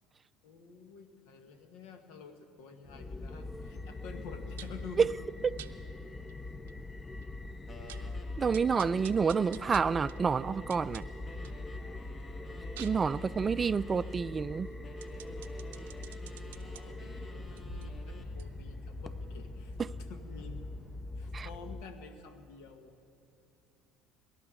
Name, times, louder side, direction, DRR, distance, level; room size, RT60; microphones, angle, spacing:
voice 1, 0.4-5.1 16.6-20.7 21.2-22.9, left 5 dB, 75° left, 1.4 m, -49 dB
sound 1, 2.8-21.8, left 2 dB, 20° left, 0.6 m, -42 dB
sound 2, 4.6-4.9 5.6-5.7 6.3-6.4 6.7-6.8 7.2-7.3 7.6-8.1 8.5-11.6 12.0-16.8 17.4-20.1 20.4-20.5, right 12 dB, 90° right, 0.6 m, -52 dB
sound 3, 7.7-10.8 11.3-14.2 14.8-18.4, left 1 dB, 35° left, 2.0 m, -53 dB
voice 2, 8.4-11.0 12.8-14.7 19.8-19.9 21.3-21.5, right 5 dB, 30° right, 0.3 m, -28 dB
23.0 x 12.0 x 3.8 m
hypercardioid pair, 75°, 0 cm